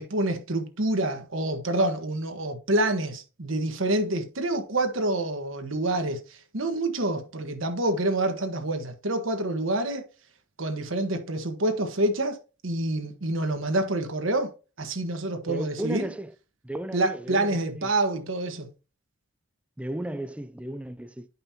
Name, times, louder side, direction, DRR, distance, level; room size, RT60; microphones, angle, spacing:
voice 1, 0.0-10.0 10.6-12.4 12.6-14.5 14.8-16.1 16.9-18.7, right 2 dB, 75° right, 1.3 m, -27 dB
voice 2, 15.5-16.3 16.6-17.9 19.8-21.3, right 1 dB, 5° right, 0.3 m, -34 dB
10.5 x 5.5 x 2.8 m
head